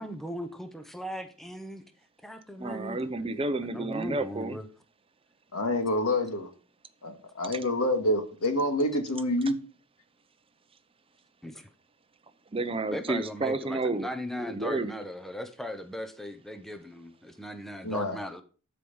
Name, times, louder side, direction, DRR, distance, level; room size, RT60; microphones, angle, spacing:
voice 1, 0.0-1.8 2.2-3.0 3.7-4.7 11.4-11.7 12.9-18.4, equal, ahead, 7 dB, 0.8 m, -38 dB
voice 2, 2.6-4.6 12.5-14.1 14.4-14.9, right 2 dB, 25° right, 11 dB, 0.7 m, -30 dB
voice 3, 5.5-6.5 7.0-9.6 17.8-18.2, left 1 dB, 80° left, 6 dB, 2.0 m, -27 dB
12.5 x 5.0 x 5.5 m, 0.38 s
head